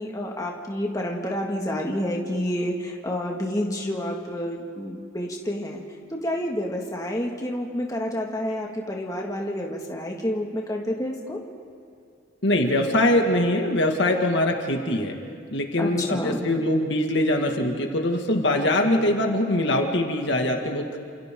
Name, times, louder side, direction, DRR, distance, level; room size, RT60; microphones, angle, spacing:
voice 1, 0.0-5.8 6.1-11.4 15.8-16.5, left 1 dB, 15° left, -1 dB, 2.0 m, -29 dB
voice 2, 12.4-15.2 15.5-21.0, left 1 dB, 60° left, 2 dB, 2.1 m, -23 dB
30.0 x 27.5 x 3.9 m, 2.4 s
head